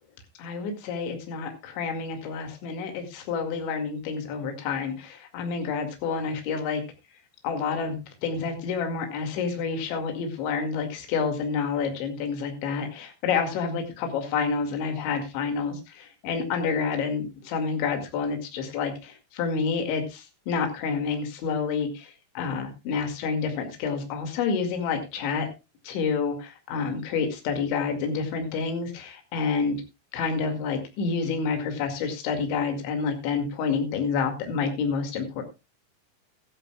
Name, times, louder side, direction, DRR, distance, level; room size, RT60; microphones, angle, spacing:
voice 1, 0.4-6.8 7.4-25.5 25.8-29.8 30.1-35.4, left 5 dB, 65° left, 5 dB, 4.3 m, -29 dB
15.5 x 13.5 x 2.3 m, 0.27 s
omnidirectional pair, 5.9 m